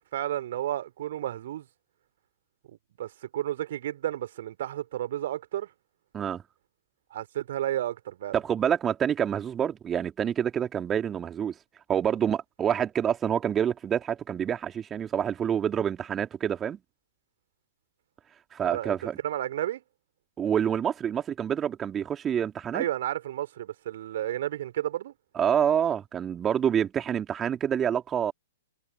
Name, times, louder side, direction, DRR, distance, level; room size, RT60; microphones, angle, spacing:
voice 1, 0.0-1.7 3.0-5.7 7.1-8.4 18.6-19.0 19.2-19.8 22.7-25.1, right 12 dB, 50° right, 3.8 m, -32 dB
voice 2, 8.3-11.5 11.9-16.8 18.5-19.2 20.4-22.8 25.4-28.3, right 8 dB, 20° right, 2.9 m, -27 dB
figure-of-eight pair, 110°, 0 cm